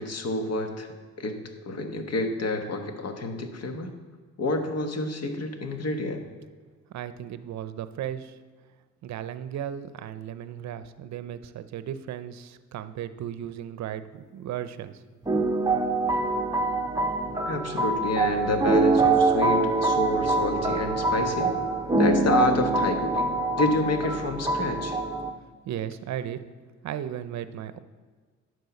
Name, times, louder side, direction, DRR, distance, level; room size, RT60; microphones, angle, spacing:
voice 1, 0.0-3.9 4.4-6.2 17.5-21.6 22.0-25.0, left 2 dB, 55° left, 5 dB, 1.3 m, -29 dB
voice 2, 6.9-8.4 9.0-15.0 25.7-26.5 26.8-27.8, right 10 dB, 65° right, 12 dB, 0.6 m, -35 dB
sound 1, 15.3-25.3, right 3 dB, 10° right, 0.7 m, -24 dB
10.5 x 4.7 x 6.9 m, 1.5 s
cardioid pair, 90°, 30 cm